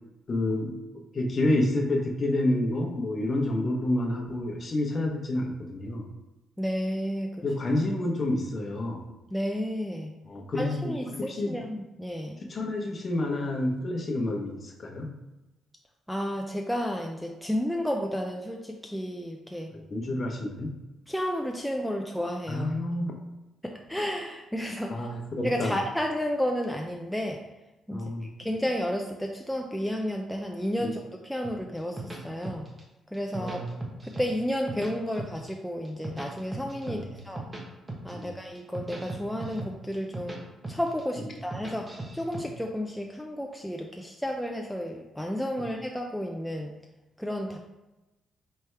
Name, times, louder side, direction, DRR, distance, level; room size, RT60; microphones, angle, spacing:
voice 1, 0.3-0.8 1.1-6.1 7.4-9.0 10.3-11.6 12.4-15.1 19.7-20.8 22.5-23.1 24.9-25.8 27.9-28.3 30.8-30.9 33.4-33.7 36.9-37.1 38.1-38.3, left 1 dB, 40° left, 2 dB, 0.9 m, -29 dB
voice 2, 6.6-7.5 9.3-10.1 10.5-12.4 16.1-19.7 21.1-22.7 23.6-25.1 25.4-27.4 27.9-28.1 28.4-32.7 33.1-33.6 34.0-37.5 38.0-46.7 47.2-47.6, equal, 5° left, 1 dB, 0.4 m, -32 dB
sound 1, 31.4-32.8 33.1-34.3 34.5-35.5 35.9-37.6 37.9-38.2 38.6-40.4 40.6-41.0 41.4-42.4, right 2 dB, 25° right, 1.0 m, -38 dB
4.4 x 3.4 x 3.3 m, 1.0 s
cardioid pair, 90°, 0 cm